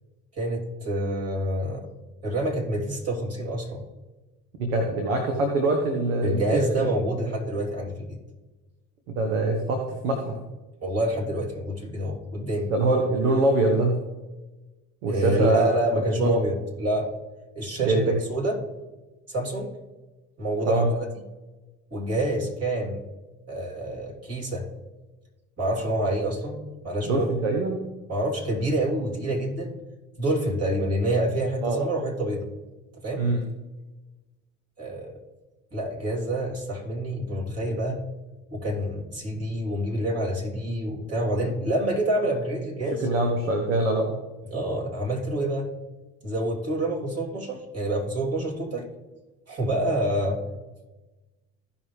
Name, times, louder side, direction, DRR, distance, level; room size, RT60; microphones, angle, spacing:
voice 1, 0.4-1.9 2.2-3.8 6.2-8.2 10.8-12.7 15.1-17.1 17.5-18.0 18.3-18.6 19.3-19.7 20.4-20.8 21.9-23.0 23.5-24.6 25.6-26.6 26.8-27.3 28.1-29.8 30.2-32.5 33.0-33.2 34.8-35.2 35.7-38.0 38.5-43.1 44.5-45.7 46.2-48.8 49.5-50.4, right 1 dB, 40° right, -2 dB, 3.2 m, -27 dB
voice 2, 4.6-6.8 9.1-10.3 12.7-14.0 15.0-15.8 16.2-16.3 17.8-18.1 20.6-20.9 27.0-27.8 31.6-31.8 33.2-33.4 43.0-44.2, right 2 dB, 80° right, 3 dB, 1.3 m, -23 dB
15.5 x 5.5 x 3.3 m, 1.1 s
hypercardioid pair, 60°, 39 cm